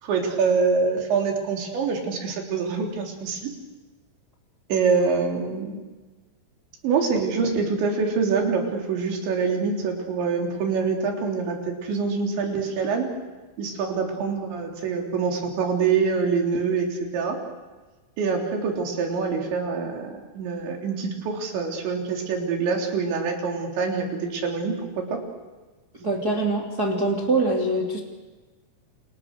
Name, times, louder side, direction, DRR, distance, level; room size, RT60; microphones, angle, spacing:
voice 1, 0.0-3.5 4.7-5.8 6.8-13.1 13.6-17.4 18.2-25.2, right 5 dB, 70° right, 2 dB, 5.8 m, -25 dB
voice 2, 26.0-28.0, right 2 dB, 25° right, 0 dB, 2.7 m, -24 dB
29.0 x 29.0 x 6.7 m, 1.3 s
omnidirectional pair, 5.5 m